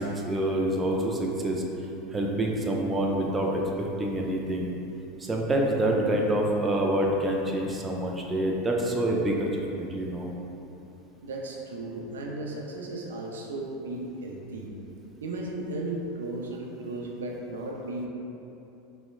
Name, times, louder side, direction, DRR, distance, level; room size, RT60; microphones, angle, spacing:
voice 1, 0.0-1.6 2.1-4.7 5.2-10.3, right 1 dB, 20° right, -1 dB, 0.3 m, -27 dB
voice 2, 11.2-14.7 15.2-18.1, right 2 dB, 90° right, -1 dB, 0.3 m, -35 dB
4.0 x 2.0 x 2.3 m, 2.9 s
hypercardioid pair, 105°, 0 cm